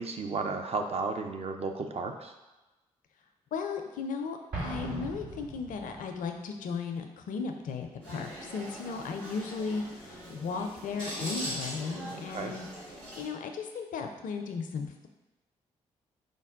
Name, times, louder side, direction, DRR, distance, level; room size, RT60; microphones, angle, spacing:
voice 1, 0.0-2.3 12.1-12.5, right 4 dB, 40° right, 5 dB, 0.5 m, -34 dB
voice 2, 3.5-12.7 13.2-15.1, left 5 dB, 55° left, 5 dB, 0.5 m, -36 dB
Explosion, 4.5-6.1, right 2 dB, 65° right, 1.3 m, -38 dB
sound 1, 8.0-13.3, equal, 85° right, 1.0 m, -41 dB
5.2 x 2.2 x 3.6 m, 1.1 s
hypercardioid pair, 40°, 16 cm